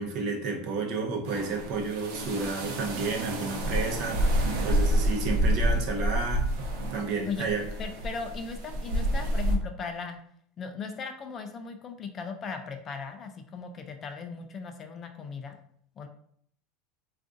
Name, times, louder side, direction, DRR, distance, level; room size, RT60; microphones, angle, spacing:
voice 1, 0.0-6.5 6.9-7.7, right 4 dB, 50° right, 1 dB, 0.7 m, -31 dB
sound 1, 1.3-9.6, right 1 dB, 80° right, 0.8 m, -28 dB
voice 2, 7.8-10.2 10.6-15.6 16.0-16.1, left 5 dB, 30° left, 6 dB, 0.3 m, -38 dB
2.4 x 2.4 x 3.7 m, 0.64 s
supercardioid pair, 145°, 0 cm